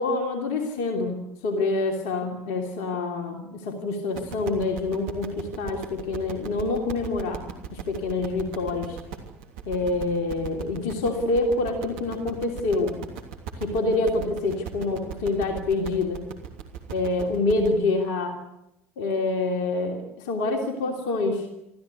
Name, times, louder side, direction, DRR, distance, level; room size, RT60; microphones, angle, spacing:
voice 1, 0.0-7.4 7.7-9.0 9.7-13.0 13.6-16.2 16.9-18.4 19.0-21.5, left 3 dB, 60° left, 4 dB, 3.0 m, -26 dB
sound 1, 4.1-17.7, right 8 dB, 65° right, 3.1 m, -38 dB
25.5 x 14.5 x 9.7 m, 0.87 s
figure-of-eight pair, 65°, 8 cm